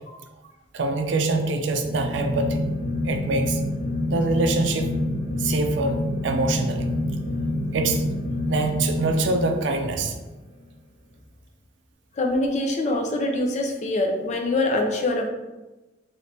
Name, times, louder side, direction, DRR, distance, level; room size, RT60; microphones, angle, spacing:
voice 1, 0.7-2.7 3.0-3.6 4.1-5.0 5.4-6.0 6.2-6.9 7.7-8.0 8.5-10.2, right 3 dB, 85° right, 5 dB, 0.4 m, -24 dB
sound 1, 1.6-10.0, left 1 dB, 85° left, 1.1 m, -27 dB
voice 2, 12.1-15.3, left 2 dB, 40° left, 2 dB, 0.5 m, -24 dB
3.3 x 3.0 x 2.6 m, 1.1 s
head